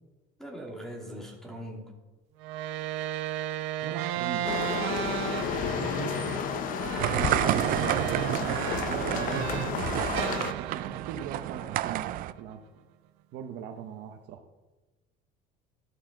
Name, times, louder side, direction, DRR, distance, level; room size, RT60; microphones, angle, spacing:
voice 1, 0.4-1.9 5.5-6.0, equal, ahead, -1 dB, 2.5 m, -41 dB
sound 1, 2.4-9.8 10.1-12.5, right 12 dB, 80° right, 0.8 m, -35 dB
voice 2, 3.8-4.6 5.5-8.1 8.7-9.7 10.7-12.6 13.3-14.4, right 8 dB, 60° right, 4 dB, 1.1 m, -40 dB
sound 2, 4.5-10.5, left 9 dB, 45° left, 0.7 m, -32 dB
sound 3, 7.0-12.3, right 14 dB, 45° right, 0.4 m, -30 dB
13.5 x 13.0 x 3.9 m, 1.1 s
cardioid pair, 160°, 20 cm